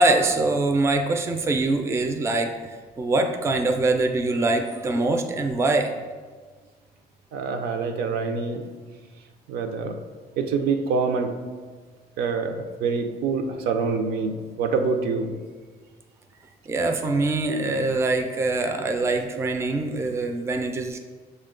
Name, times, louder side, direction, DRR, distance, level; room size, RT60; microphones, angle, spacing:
voice 1, 0.0-5.9 16.7-21.0, right 2 dB, 15° right, 4 dB, 0.4 m, -23 dB
voice 2, 7.3-8.6 9.5-9.9 10.4-11.3 12.2-12.5 12.8-14.3 14.6-15.3, right 5 dB, 70° right, 5 dB, 0.5 m, -25 dB
6.4 x 2.2 x 3.7 m, 1.5 s
cardioid pair, 110°, 17 cm